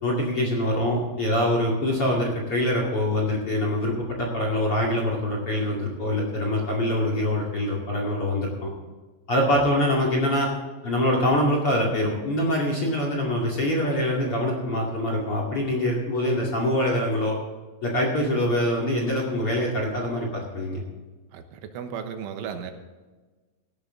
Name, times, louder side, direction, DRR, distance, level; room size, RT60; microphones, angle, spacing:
voice 1, 0.0-8.7 9.3-10.5 10.8-17.4 17.8-20.8, left 1 dB, 40° left, -1 dB, 2.3 m, -24 dB
voice 2, 21.3-22.7, right 7 dB, 80° right, 6 dB, 3.6 m, -35 dB
16.0 x 12.0 x 3.8 m, 1.3 s
omnidirectional pair, 5.6 m